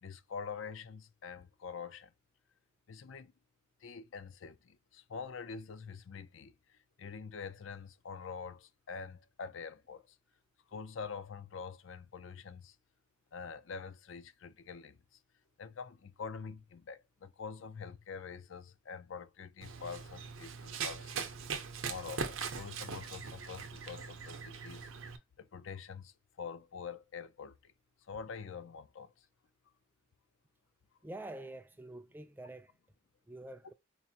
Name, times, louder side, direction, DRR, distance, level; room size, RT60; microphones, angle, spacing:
voice 1, 0.0-2.1 2.9-3.3 3.8-10.2 10.7-12.8 13.3-15.0 15.6-21.3 21.9-24.9 25.4-27.7 28.1-29.2, left 5 dB, 70° left, 0.4 m, -45 dB
Run, 19.6-25.2, right 5 dB, 85° right, 0.7 m, -41 dB
voice 2, 31.0-32.7 33.3-33.7, right 1 dB, 10° right, 0.3 m, -46 dB
4.5 x 2.5 x 2.7 m
head